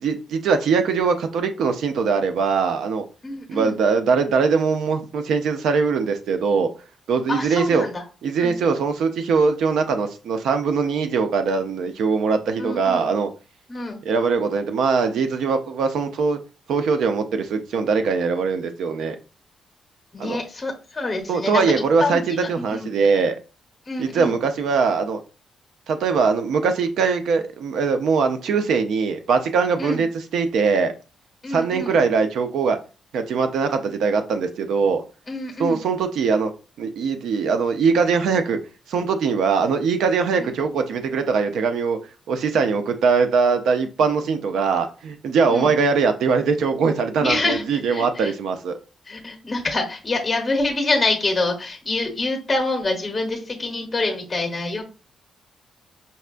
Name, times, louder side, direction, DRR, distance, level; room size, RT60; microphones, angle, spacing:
voice 1, 0.0-3.0 3.5-6.7 7.1-7.9 8.2-13.3 14.1-16.4 16.7-19.2 20.2-20.4 21.3-23.4 24.0-25.2 25.9-30.9 31.5-32.8 33.1-35.0 35.6-36.5 36.8-38.6 38.9-42.0 42.3-48.8, right 5 dB, 80° right, 0.4 m, -21 dB
voice 2, 3.2-3.8 7.3-8.0 8.4-8.6 12.6-13.0 13.7-14.0 20.1-21.6 22.0-23.0 23.9-24.4 29.8-30.0 31.4-32.0 35.3-35.9 40.4-40.6 45.4-45.7 47.2-48.3 49.1-54.8, left 2 dB, 15° left, 1.0 m, -26 dB
5.2 x 2.2 x 2.4 m
cardioid pair, 135°, 0 cm